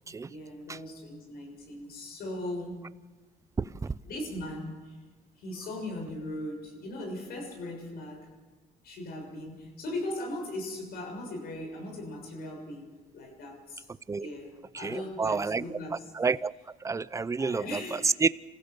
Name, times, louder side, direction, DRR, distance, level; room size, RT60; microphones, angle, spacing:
voice 1, 0.0-3.1 4.0-5.0 5.4-8.3 8.8-13.8 14.2-16.1 17.4-18.1, left 1 dB, 65° left, 6.9 m, -39 dB
voice 2, 3.6-3.9 14.1-14.3 14.7-15.6 16.1-16.5 16.8-18.3, right 4 dB, 20° right, 0.6 m, -29 dB
28.5 x 15.5 x 7.0 m
cardioid pair, 110°, 17 cm